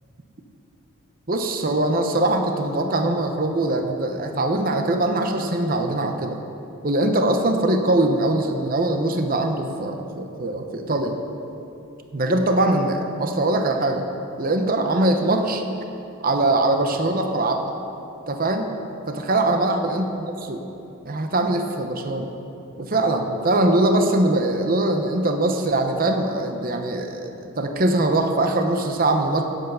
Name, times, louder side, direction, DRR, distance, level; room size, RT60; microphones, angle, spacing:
voice 1, 1.3-6.4 6.8-11.2 12.1-14.0 14.4-15.6 16.2-17.7 18.3-18.7 19.1-20.6 21.0-22.3 22.8-29.4, right 2 dB, 40° right, 5 dB, 0.8 m, -22 dB
16.5 x 8.1 x 5.5 m, 2.8 s
head